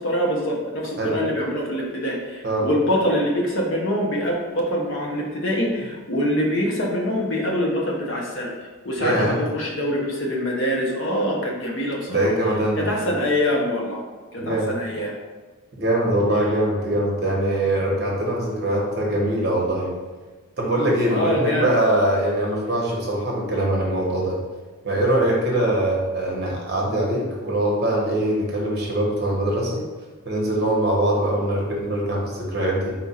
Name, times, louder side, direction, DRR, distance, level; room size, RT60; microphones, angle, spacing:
voice 1, 0.0-8.5 8.8-12.3 12.8-14.0 14.3-15.1 21.1-21.7, equal, 60° left, -1 dB, 0.8 m, -24 dB
voice 2, 9.0-9.4 12.1-12.9 14.4-14.7 15.7-19.9 20.6-24.4 24.8-29.8 30.2-32.9, right 1 dB, 50° right, -2 dB, 0.9 m, -22 dB
4.3 x 2.4 x 4.1 m, 1.3 s
head